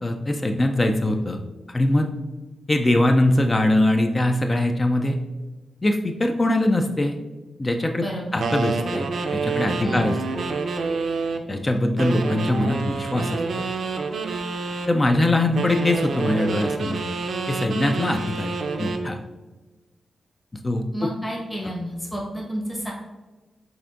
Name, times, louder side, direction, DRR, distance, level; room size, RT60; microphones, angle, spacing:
voice 1, 0.0-1.4 1.7-2.1 2.7-5.2 5.8-7.2 7.6-8.1 8.3-9.1 9.3-10.5 11.5-13.4 14.9-17.0 17.5-19.2 20.6-21.1, left 1 dB, 30° left, 5 dB, 0.4 m, -22 dB
voice 2, 8.0-8.4 9.8-10.1 20.9-22.9, equal, 15° left, -2 dB, 1.2 m, -30 dB
sound 1, 8.4-11.5 12.0-14.9 15.5-19.1, right 4 dB, 70° right, 0.4 m, -28 dB
6.8 x 2.5 x 2.5 m, 1.2 s
supercardioid pair, 45°, 0 cm